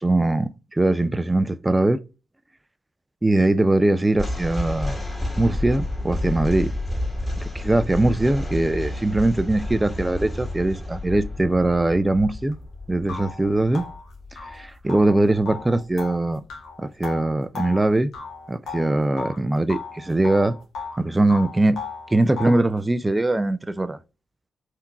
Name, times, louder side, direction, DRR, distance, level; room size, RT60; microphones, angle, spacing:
voice 1, 0.0-2.0 3.2-5.0 5.4-6.7 7.4-12.6 12.9-13.9 14.3-16.4 16.8-18.1 18.5-20.5 21.0-21.8 22.1-24.0, right 2 dB, 20° right, 0.5 m, -21 dB
sound 1, 4.1-15.4, left 1 dB, 15° left, 2.0 m, -30 dB
sound 2, 12.5-12.6 13.1-19.4 19.7-21.0 21.3-22.7, left 4 dB, 65° left, 1.1 m, -36 dB
3.6 x 2.8 x 4.6 m
hypercardioid pair, 40°, 0 cm